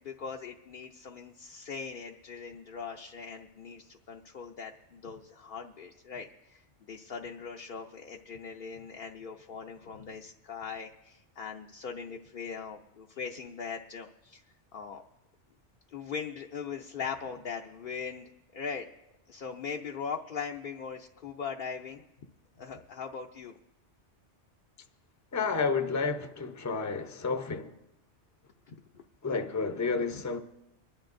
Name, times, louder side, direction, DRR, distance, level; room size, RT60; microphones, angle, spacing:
voice 1, 0.0-6.6 6.9-14.4 14.7-15.0 15.9-18.9 19.3-22.0 22.6-23.6 28.7-29.0, left 6 dB, 55° left, 0.7 m, -40 dB
voice 2, 25.3-27.8 29.2-30.4, left 4 dB, 20° left, 0.6 m, -31 dB
26.5 x 11.0 x 2.6 m
omnidirectional pair, 1.2 m